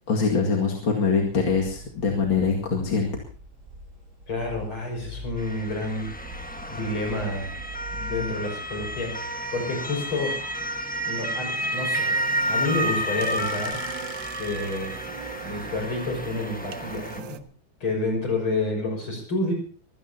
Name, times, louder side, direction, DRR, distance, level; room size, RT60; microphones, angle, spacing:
voice 1, 0.1-3.1, left 5 dB, 70° left, 0 dB, 2.9 m, -23 dB
sound 1, 0.9-11.7, left 1 dB, 85° right, 6.9 m, -44 dB
voice 2, 4.3-6.1 6.7-7.5 7.9-10.3 11.0-12.2 12.5-13.8 14.4-14.9 15.4-17.4 17.8-19.5, left 2 dB, 90° left, 2 dB, 6.7 m, -29 dB
Motor vehicle (road) / Siren, 5.4-17.2, equal, 5° left, 1.2 m, -31 dB
sound 2, 11.5-17.4, right 10 dB, 70° right, 1.6 m, -40 dB
25.0 x 16.5 x 2.9 m, 0.40 s
omnidirectional pair, 2.2 m